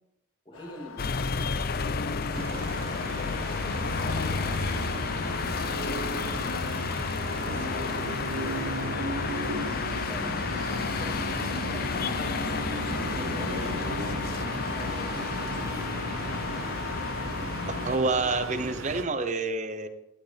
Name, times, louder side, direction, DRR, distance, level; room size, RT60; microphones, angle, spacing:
voice 1, 0.4-2.6 3.3-7.0 7.4-9.3 9.9-10.3 10.7-16.1, equal, 25° left, -2 dB, 2.7 m, -45 dB
sound 1, 0.5-18.7, left 4 dB, 80° left, 0.9 m, -43 dB
sound 2, 1.0-18.0, left 5 dB, 45° left, 0.5 m, -31 dB
sound 3, 2.3-19.0, right 2 dB, 85° right, 1.0 m, -36 dB
voice 2, 17.7-19.9, right 3 dB, 35° right, 9 dB, 0.8 m, -28 dB
11.5 x 11.0 x 3.4 m, 0.85 s
head